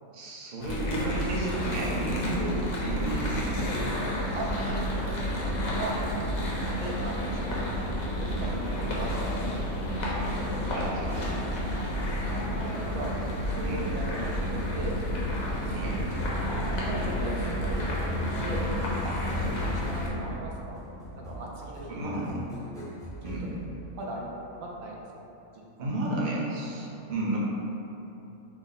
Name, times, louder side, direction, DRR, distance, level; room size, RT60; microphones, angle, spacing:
voice 1, 0.1-3.8 10.7-11.3 13.6-13.9 15.7-16.0 19.4-19.6 21.9-22.4 23.2-23.5 25.8-27.4, right 2 dB, 40° right, -5 dB, 0.7 m, -32 dB
sound 1, 0.6-20.1, equal, 70° left, 1.2 m, -30 dB
voice 2, 4.3-5.9 6.7-7.7 8.0-9.3 9.6-9.7 11.8-11.9 12.3-13.1 13.5-15.0 15.4-16.0 16.7-18.1 18.4-18.7 19.0-20.8 21.1-22.2 23.2-23.6 23.9-24.3 24.6-25.0 25.5-25.6, right 2 dB, 75° right, -2 dB, 1.0 m, -39 dB
sound 2, 17.7-24.4, right 1 dB, 5° left, 0.6 m, -42 dB
6.0 x 2.1 x 3.9 m, 3.0 s
omnidirectional pair, 1.5 m